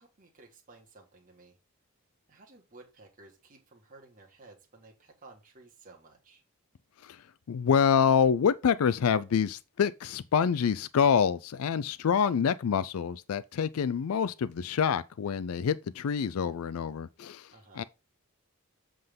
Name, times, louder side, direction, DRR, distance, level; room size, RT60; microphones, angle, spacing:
voice 1, 0.0-1.6 2.3-6.4 17.5-17.8, right 3 dB, 40° right, 1.7 m, -55 dB
voice 2, 7.0-17.8, left 7 dB, 70° left, 0.4 m, -27 dB
7.7 x 3.9 x 5.1 m
head